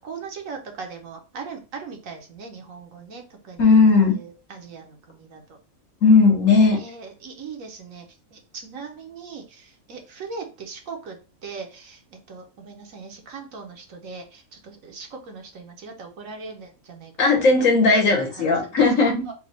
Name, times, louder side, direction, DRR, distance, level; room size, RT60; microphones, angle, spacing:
voice 1, 0.0-5.6 6.7-8.1 8.3-17.4 17.7-17.8 18.2-18.8 19.3-19.4, right 5 dB, 65° right, 3 dB, 1.3 m, -39 dB
voice 2, 3.6-4.2 6.0-6.8 17.2-19.3, left 4 dB, 65° left, 1 dB, 1.5 m, -16 dB
4.1 x 2.4 x 4.2 m, 0.32 s
omnidirectional pair, 1.5 m